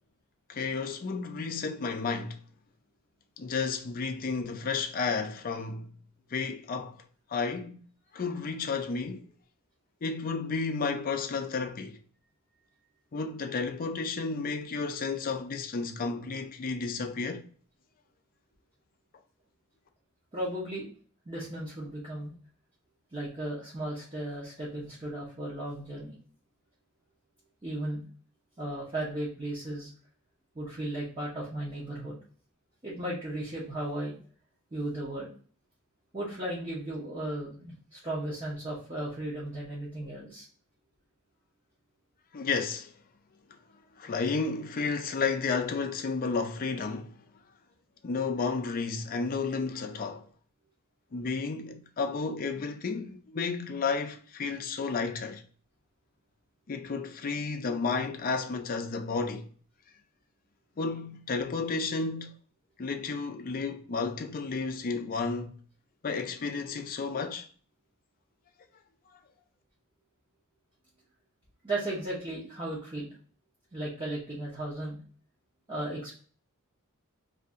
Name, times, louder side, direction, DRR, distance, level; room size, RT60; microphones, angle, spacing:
voice 1, 0.5-2.4 3.4-6.0 6.3-7.0 7.3-7.8 8.1-9.3 10.0-12.0 13.1-17.5 42.3-42.9 44.0-47.2 48.0-50.2 51.1-55.4 56.7-59.5 60.8-62.3 62.8-65.6 66.0-67.5, left 4 dB, 40° left, 0.4 m, -32 dB
voice 2, 20.3-20.9 21.3-22.3 23.1-26.1 27.6-28.0 28.6-29.9 30.5-32.1 32.8-34.2 34.7-35.3 36.1-40.5 71.6-73.1 73.7-75.0 75.7-76.1, right 1 dB, 25° right, 0.8 m, -35 dB
2.7 x 2.6 x 3.5 m
head